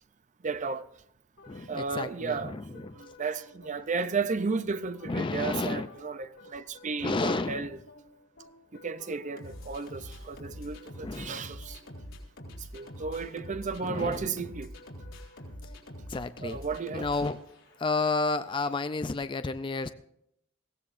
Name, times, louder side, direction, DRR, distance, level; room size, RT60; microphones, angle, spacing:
voice 1, 0.4-0.8 1.7-7.8 8.7-11.8 12.7-14.7 16.4-17.1, right 4 dB, 35° right, 0.6 m, -34 dB
sound 1, 1.4-18.0, left 1 dB, 90° left, 3.5 m, -47 dB
voice 2, 1.5-3.0 5.1-5.9 7.0-7.7 11.0-11.4 13.8-14.3 16.1-16.6 16.9-17.4 17.8-19.9, left 3 dB, 25° left, 0.4 m, -31 dB
21.5 x 16.0 x 2.6 m
head